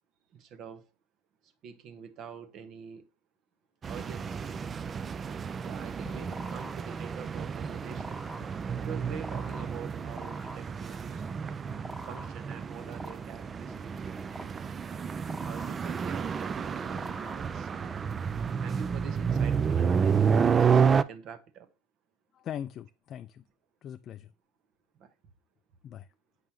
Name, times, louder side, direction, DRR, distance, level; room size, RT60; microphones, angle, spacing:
voice 1, 0.3-0.8 1.4-3.1 3.9-4.6 5.2-8.2 8.8-11.3 12.0-14.3 15.4-18.0 18.6-21.7 25.0-25.1, right 7 dB, 50° right, 1.3 m, -46 dB
sound 1, 3.8-21.0, right 6 dB, 30° right, 0.4 m, -30 dB
sound 2, 5.6-18.0, equal, 10° right, 1.7 m, -47 dB
voice 2, 22.3-23.4 23.8-24.3 25.8-26.1, left 10 dB, 40° left, 0.4 m, -41 dB
8.0 x 5.4 x 3.1 m
hypercardioid pair, 90°, 0 cm